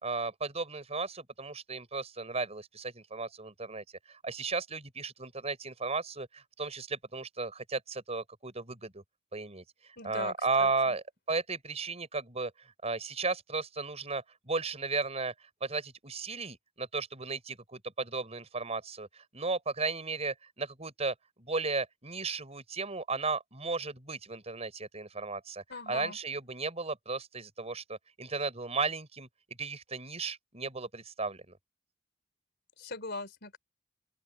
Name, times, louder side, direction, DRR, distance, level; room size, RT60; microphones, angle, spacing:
voice 1, 0.0-9.0 9.3-9.6 10.0-15.3 15.6-31.5, right 4 dB, 35° right, 5.1 m, -35 dB
voice 2, 10.0-10.9 25.7-26.2 32.8-33.6, left 3 dB, 60° left, 3.9 m, -41 dB
open air
head